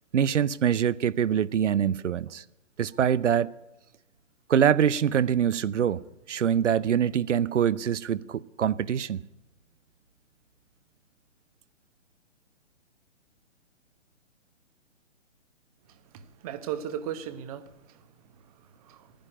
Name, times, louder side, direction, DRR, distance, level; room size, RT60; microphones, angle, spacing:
voice 1, 0.1-2.4 2.8-3.5 4.5-6.0 6.3-9.2, right 9 dB, 70° right, 0.7 m, -24 dB
voice 2, 15.9-19.1, right 9 dB, 30° right, 1.1 m, -38 dB
12.5 x 10.5 x 9.9 m
hypercardioid pair, 135°, 37 cm